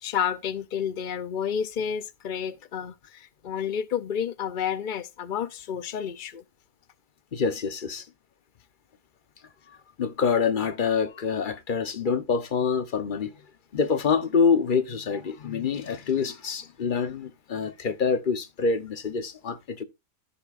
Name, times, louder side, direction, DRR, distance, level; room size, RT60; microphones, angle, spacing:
voice 1, 0.0-6.4, left 8 dB, 80° left, 0.4 m, -30 dB
voice 2, 7.3-8.0 10.0-13.3 13.7-19.8, left 5 dB, 40° left, 0.9 m, -26 dB
13.5 x 8.2 x 2.5 m
omnidirectional pair, 1.7 m